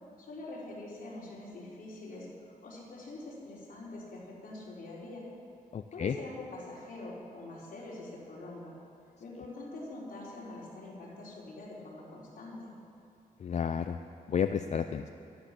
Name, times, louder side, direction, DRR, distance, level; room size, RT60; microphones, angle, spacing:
voice 1, 0.2-5.3 5.9-8.7 9.2-12.7, left 2 dB, 70° left, -6 dB, 4.1 m, -44 dB
voice 2, 5.7-6.1 13.4-14.0 14.3-15.1, left 7 dB, 50° left, 8 dB, 0.4 m, -31 dB
14.0 x 12.5 x 6.0 m, 2.7 s
wide cardioid pair, 155°, 15 cm